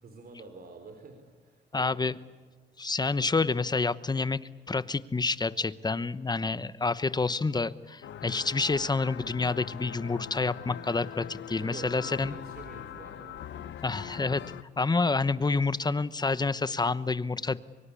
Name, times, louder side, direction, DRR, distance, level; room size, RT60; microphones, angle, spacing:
voice 1, 0.0-2.1 11.5-14.7, right 3 dB, 50° right, 5 dB, 3.9 m, -48 dB
voice 2, 1.7-2.1 2.8-4.4 4.7-12.4 13.8-14.4 14.8-17.6, left 3 dB, 20° left, 15 dB, 1.0 m, -28 dB
sound 1, 8.0-14.6, left 10 dB, 70° left, 1.1 m, -42 dB
24.5 x 24.0 x 8.5 m, 1.4 s
cardioid pair, 90°, 20 cm